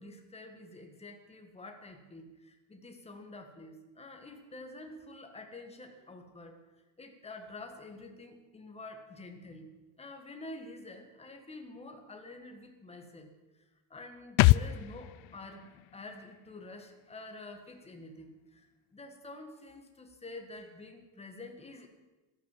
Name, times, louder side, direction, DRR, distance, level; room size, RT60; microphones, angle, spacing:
voice 1, 0.0-6.6 7.0-9.7 10.0-13.3 13.9-21.9, left 2 dB, 15° left, 4 dB, 1.7 m, -48 dB
sound 1, 14.4-17.9 18.2-18.3, left 19 dB, 80° left, 0.5 m, -29 dB
14.0 x 12.5 x 7.4 m, 1.1 s
cardioid pair, 175°, 48 cm